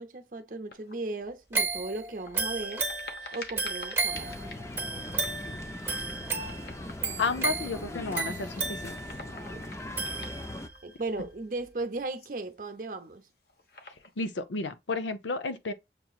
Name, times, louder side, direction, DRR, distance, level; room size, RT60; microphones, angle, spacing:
voice 1, 0.0-2.9 3.1-4.4 9.5-9.7 10.8-13.3, right 2 dB, 50° right, 0.7 m, -37 dB
sound 1, 0.7-1.1 1.7-7.6 8.2-8.3 8.5-11.1 12.1-12.7 13.3-14.2, left 3 dB, 55° left, 1.0 m, -48 dB
sound 2, 1.5-10.8 11.2-11.3, right 4 dB, 15° right, 1.0 m, -34 dB
sound 3, 4.1-10.7, left 1 dB, 15° left, 0.4 m, -40 dB
voice 2, 7.2-8.9 14.2-15.7, left 3 dB, 85° left, 0.6 m, -32 dB
6.7 x 2.9 x 2.3 m
head